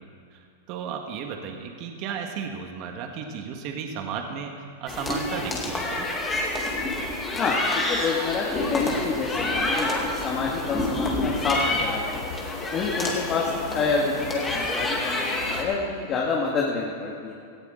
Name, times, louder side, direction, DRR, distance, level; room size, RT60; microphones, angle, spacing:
voice 1, 0.0-6.1 13.0-13.1, right 6 dB, 45° right, 3 dB, 1.6 m, -34 dB
sound 1, 4.9-15.6, left 2 dB, 15° left, 2.3 m, -28 dB
voice 2, 7.4-12.3 12.7-17.3, left 4 dB, 30° left, -3 dB, 1.8 m, -28 dB
sound 2, 10.5-16.0, left 6 dB, 75° left, 1.2 m, -39 dB
18.0 x 13.5 x 3.8 m, 2.4 s
supercardioid pair, 140°, 0 cm